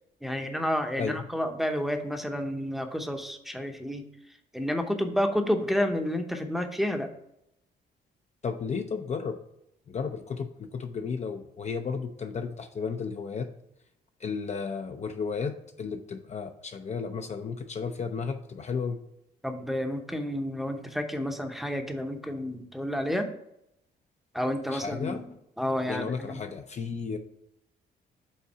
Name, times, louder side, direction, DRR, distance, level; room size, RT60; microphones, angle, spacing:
voice 1, 0.2-4.1 4.5-7.1 19.4-23.3 24.3-25.2 25.6-26.4, equal, ahead, 4 dB, 0.7 m, -30 dB
voice 2, 8.4-9.4 9.9-13.5 14.2-19.0 24.7-25.2 25.9-27.2, left 5 dB, 40° left, 6 dB, 0.5 m, -33 dB
5.5 x 3.8 x 5.4 m, 0.79 s
cardioid pair, 100°, 18 cm